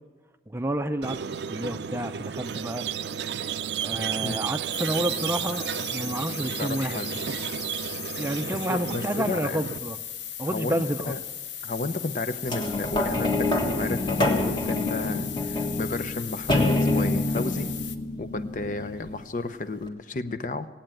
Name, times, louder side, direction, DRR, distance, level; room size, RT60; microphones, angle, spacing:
voice 1, 0.5-2.9 3.8-7.0 8.2-10.0 10.4-11.1, right 1 dB, 15° right, 8 dB, 0.5 m, -30 dB
Squeak, 1.0-9.8, right 8 dB, 70° right, 0.4 m, -32 dB
sound 1, 4.7-18.0, left 9 dB, 90° left, 0.9 m, -37 dB
voice 2, 6.6-7.1 8.7-9.6 10.4-11.2 11.6-17.7 18.2-20.7, left 3 dB, 45° left, 11 dB, 0.7 m, -32 dB
sound 2, 12.5-19.2 19.9-20.0, left 2 dB, 25° left, 1.6 m, -27 dB
18.0 x 8.7 x 9.0 m, 1.3 s
head